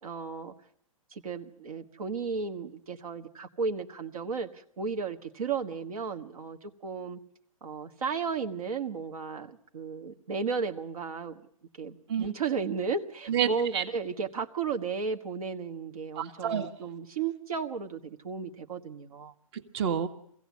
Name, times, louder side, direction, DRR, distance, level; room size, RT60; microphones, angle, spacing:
voice 1, 0.0-0.5 1.1-7.2 7.6-11.3 11.8-19.3, right 5 dB, 80° right, 6 dB, 1.5 m, -34 dB
voice 2, 13.3-13.8 16.1-16.7 19.5-20.1, right 8 dB, 50° right, 10 dB, 1.6 m, -29 dB
23.5 x 16.5 x 8.4 m, 0.69 s
hypercardioid pair, 140°, 18 cm